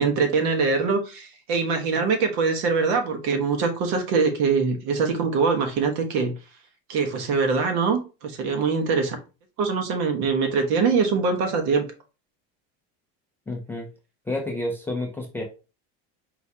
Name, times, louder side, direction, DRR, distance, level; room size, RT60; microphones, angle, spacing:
voice 1, 0.0-6.3 6.9-9.2 9.6-11.8, right 5 dB, 65° right, 1.2 m, -23 dB
voice 2, 13.5-13.9 14.3-15.4, left 1 dB, 5° left, 0.4 m, -29 dB
4.5 x 3.3 x 2.7 m
cardioid pair, 170°, 32 cm